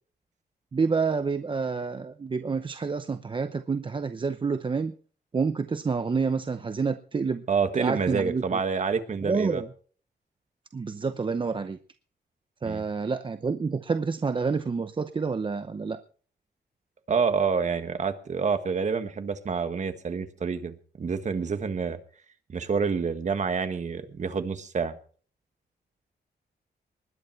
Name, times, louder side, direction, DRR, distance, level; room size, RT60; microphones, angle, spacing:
voice 1, 0.7-4.9 5.3-7.4 7.8-8.6 9.2-9.7 10.7-11.8 12.6-16.0, right 5 dB, 30° right, 10 dB, 0.7 m, -28 dB
voice 2, 7.5-9.6 12.6-12.8 17.1-22.0 22.5-25.0, right 5 dB, 45° right, 9 dB, 1.6 m, -28 dB
20.0 x 10.5 x 4.6 m, 0.43 s
wide cardioid pair, 130°, 17 cm